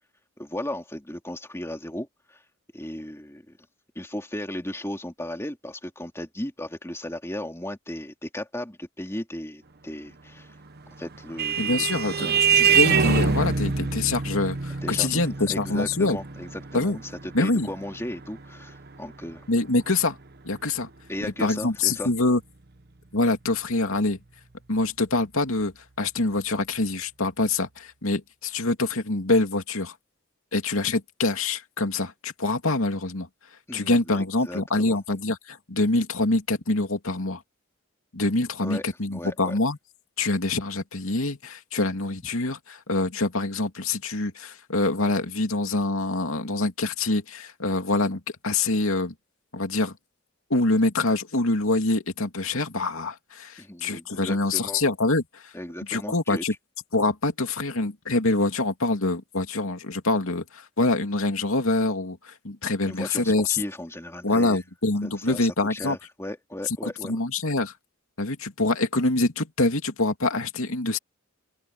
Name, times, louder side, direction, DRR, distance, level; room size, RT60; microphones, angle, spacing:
voice 1, 0.4-2.4 2.7-3.4 3.9-10.5 11.0-11.8 12.2-12.5 14.8-15.2 15.5-19.5 21.1-22.1 33.7-35.0 38.6-38.8 39.1-39.6 53.6-54.8 55.5-56.4 62.8-64.6 65.0-67.2, left 1 dB, 10° left, 3.0 m, -36 dB
Vehicle horn car horn honking, 10.8-19.7, right 6 dB, 50° right, 1.1 m, -25 dB
voice 2, 11.6-12.3 12.5-16.2 16.7-17.0 17.3-17.7 19.5-20.2 20.4-20.9 21.4-22.4 23.1-24.2 24.7-29.9 30.5-33.3 33.7-37.4 38.1-39.8 40.2-49.1 49.5-49.9 50.5-55.5 55.9-56.5 56.9-63.6 64.2-66.0 66.8-67.7 68.2-71.0, left 2 dB, 70° left, 2.8 m, -25 dB
open air
head